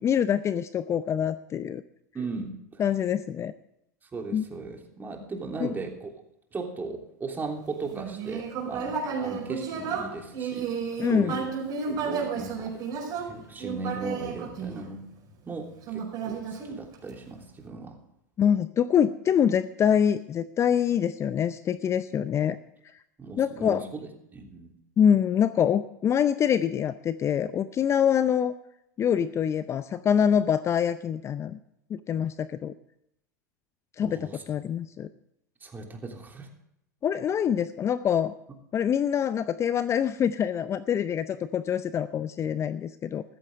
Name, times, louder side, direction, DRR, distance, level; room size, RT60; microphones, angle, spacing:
voice 1, 0.0-1.8 2.8-3.5 4.3-4.4 5.6-5.7 11.0-11.4 18.4-22.6 23.4-23.8 25.0-28.5 29.0-31.6 31.9-32.7 34.0-35.1 37.0-38.3 38.7-43.2, left 8 dB, 30° left, 14 dB, 0.6 m, -25 dB
voice 2, 2.1-2.8 4.1-6.1 6.5-10.7 11.0-11.5 11.9-12.8 13.2-15.0 15.4-18.0 23.2-24.7 34.0-34.4 35.6-36.5, right 3 dB, 20° right, 2 dB, 3.3 m, -37 dB
Human voice, 7.9-15.3 15.9-17.3, right 6 dB, 45° right, 5.1 m, -32 dB
15.0 x 14.0 x 3.6 m, 0.80 s
hypercardioid pair, 90°, 10 cm